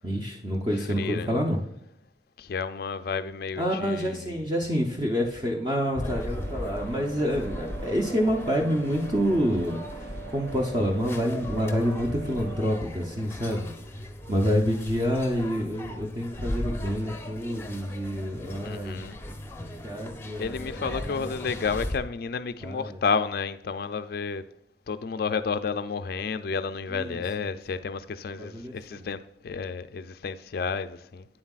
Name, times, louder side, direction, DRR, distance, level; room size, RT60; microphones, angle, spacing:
voice 1, 0.0-1.6 3.6-13.7 14.3-19.4 19.8-21.3 22.6-23.0 26.9-27.6 28.4-29.1, equal, 25° right, 0.7 m, -28 dB
voice 2, 1.0-1.3 2.4-4.2 18.6-19.2 20.4-24.4 24.9-31.3, left 5 dB, 55° left, 0.4 m, -31 dB
sound 1, 5.9-22.0, left 1 dB, 15° left, 0.7 m, -38 dB
sound 2, 6.1-12.6, right 4 dB, 60° right, 0.8 m, -42 dB
8.9 x 7.3 x 2.4 m
head